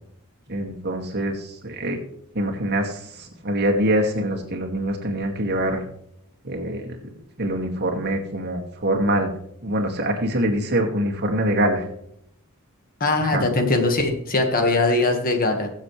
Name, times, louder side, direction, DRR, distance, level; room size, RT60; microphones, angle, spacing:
voice 1, 0.5-2.0 2.3-5.8 6.4-7.0 7.4-9.3 9.6-11.9 13.2-13.4, right 1 dB, 50° right, 2 dB, 2.2 m, -24 dB
voice 2, 13.0-15.7, left 2 dB, 40° left, 5 dB, 1.7 m, -21 dB
21.5 x 7.5 x 3.3 m, 0.71 s
head